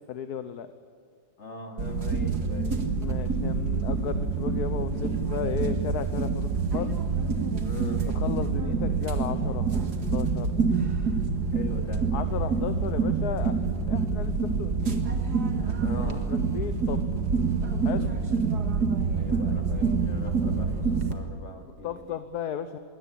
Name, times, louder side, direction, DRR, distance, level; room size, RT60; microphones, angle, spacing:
voice 1, 0.1-0.7 3.0-6.9 8.1-10.5 12.1-13.5 13.8-14.3 14.6-15.0 16.0-17.0 17.8-18.1 21.8-22.8, left 8 dB, 60° left, 10 dB, 1.4 m, -34 dB
voice 2, 1.4-2.8 7.6-8.0 11.5-12.0 15.8-16.3 19.1-22.2, left 3 dB, 40° left, 4 dB, 2.7 m, -41 dB
sound 1, 1.8-21.1, right 4 dB, 60° right, 2.3 m, -27 dB
22.5 x 17.5 x 8.7 m, 2.3 s
omnidirectional pair, 2.0 m